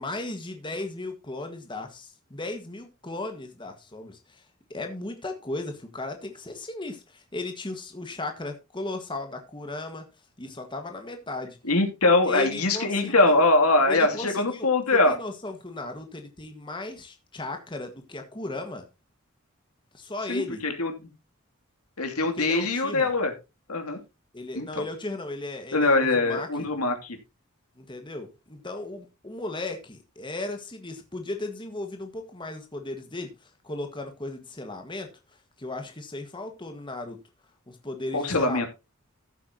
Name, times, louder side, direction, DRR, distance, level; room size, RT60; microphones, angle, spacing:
voice 1, 0.0-4.4 4.7-10.0 10.4-11.6 12.2-13.1 13.9-14.7 15.0-18.8 19.9-20.6 22.3-23.1 24.3-26.5 27.8-35.1 35.6-37.2 37.7-38.6, left 2 dB, 20° left, 1.6 m, -36 dB
voice 2, 11.6-15.2 20.3-20.9 22.0-23.3 23.7-24.0 24.5-24.8 25.7-27.2 38.1-38.7, left 2 dB, 85° left, 2.7 m, -22 dB
14.5 x 8.3 x 2.8 m
head